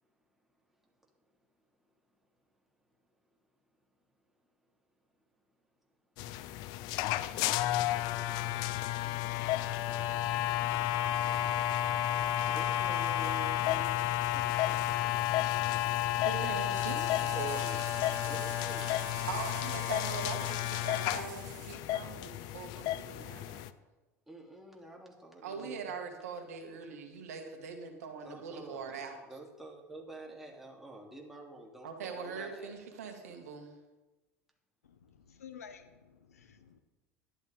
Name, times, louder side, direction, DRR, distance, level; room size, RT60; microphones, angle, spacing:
sound 1, 6.2-23.7, left 13 dB, 60° left, 0.6 m, -32 dB
voice 1, 12.5-15.2 15.6-16.1 17.3-17.9 18.2-19.1 24.3-26.0 28.2-32.8, right 2 dB, 5° right, -1 dB, 2.9 m, -49 dB
voice 2, 16.2-17.6 19.3-23.7 25.4-29.2 31.8-33.7, right 6 dB, 80° right, 4 dB, 1.8 m, -42 dB
sound 2, 16.7-21.7, right 14 dB, 55° right, 0.6 m, -48 dB
voice 3, 34.8-36.8, left 7 dB, 85° left, 10 dB, 0.9 m, -52 dB
11.5 x 11.5 x 3.6 m, 1.1 s
hypercardioid pair, 75°, 8 cm